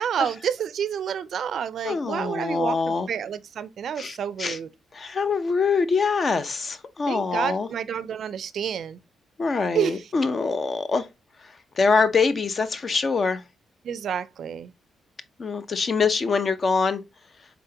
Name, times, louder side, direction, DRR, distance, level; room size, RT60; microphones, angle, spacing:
voice 1, 0.0-4.7 7.1-9.0 9.7-10.0 13.8-14.7, right 8 dB, 65° right, 0.3 m, -29 dB
voice 2, 1.8-3.1 4.0-4.6 4.9-7.7 9.4-11.1 11.4-13.4 15.4-17.0, left 4 dB, 45° left, 0.6 m, -24 dB
3.8 x 3.6 x 2.7 m
cardioid pair, 85°, 0 cm